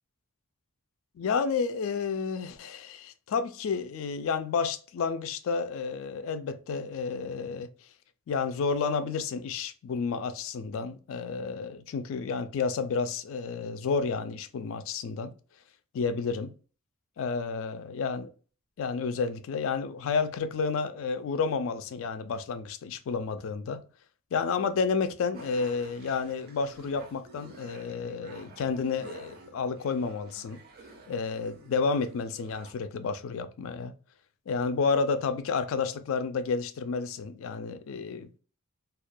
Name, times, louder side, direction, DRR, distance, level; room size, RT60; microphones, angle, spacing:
voice 1, 1.2-7.7 8.3-15.3 15.9-16.5 17.2-18.3 18.8-23.8 24.3-30.6 31.1-33.9 34.5-38.4, left 5 dB, 60° left, 0.3 m, -31 dB
sound 1, 25.3-32.7, right 3 dB, 45° right, 0.5 m, -51 dB
2.3 x 2.2 x 2.5 m
head